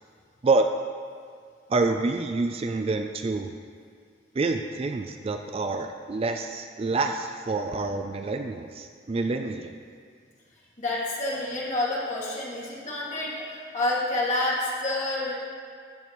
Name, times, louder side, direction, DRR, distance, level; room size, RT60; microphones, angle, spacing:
voice 1, 0.4-0.8 1.7-3.5 4.4-9.7, right 3 dB, 30° right, 6 dB, 0.3 m, -27 dB
voice 2, 10.8-15.3, left 2 dB, 40° left, -6 dB, 2.1 m, -28 dB
14.0 x 8.2 x 3.0 m, 2.1 s
head